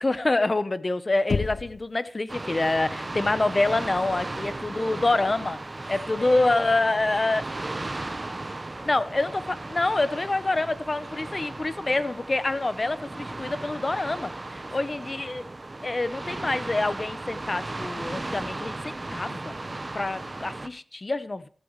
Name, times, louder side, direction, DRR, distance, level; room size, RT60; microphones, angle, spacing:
voice 1, 0.0-5.6 5.9-7.4 8.8-15.5 15.8-19.6 19.9-21.5, left 2 dB, 35° left, 0.9 m, -26 dB
Knock, 1.3-1.9, left 4 dB, 75° left, 0.5 m, -28 dB
sound 1, 2.3-20.7, right 2 dB, 30° right, 0.9 m, -36 dB
voice 2, 5.8-9.4 14.6-15.1 20.1-20.3, right 1 dB, 15° right, 7.1 m, -46 dB
15.5 x 14.0 x 3.2 m
wide cardioid pair, 100°, 0 cm